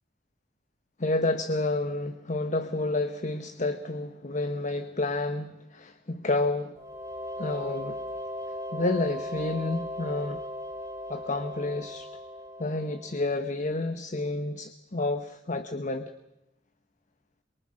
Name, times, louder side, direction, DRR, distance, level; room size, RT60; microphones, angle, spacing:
voice 1, 1.0-6.8 7.4-8.0 8.7-10.4 11.1-12.1 12.6-16.1, left 2 dB, 45° left, 9 dB, 1.1 m, -30 dB
sound 1, 6.8-13.4, left 1 dB, 15° right, 2.4 m, -38 dB
27.5 x 23.5 x 6.4 m, 0.88 s
head